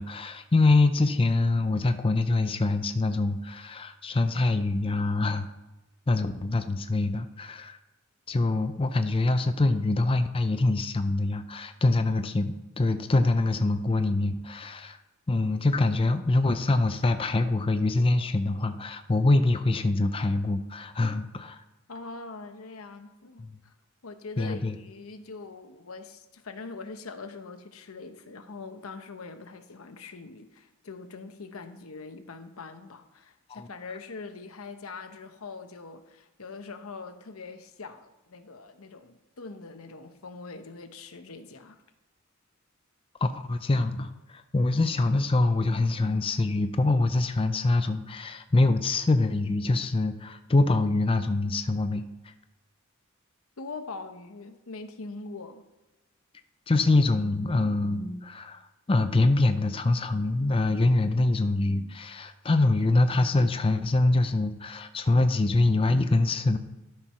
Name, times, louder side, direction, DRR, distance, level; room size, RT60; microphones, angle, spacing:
voice 1, 0.0-5.5 6.1-7.8 8.3-15.0 15.3-21.6 23.4-23.5 24.4-24.8 33.5-33.7 43.2-52.3 56.7-58.6 58.9-66.6, left 2 dB, 25° left, 9 dB, 0.5 m, -24 dB
voice 2, 21.9-23.7 24.0-41.8 53.6-55.7, left 3 dB, 90° left, 8 dB, 0.9 m, -42 dB
12.5 x 4.6 x 5.7 m, 1.0 s
head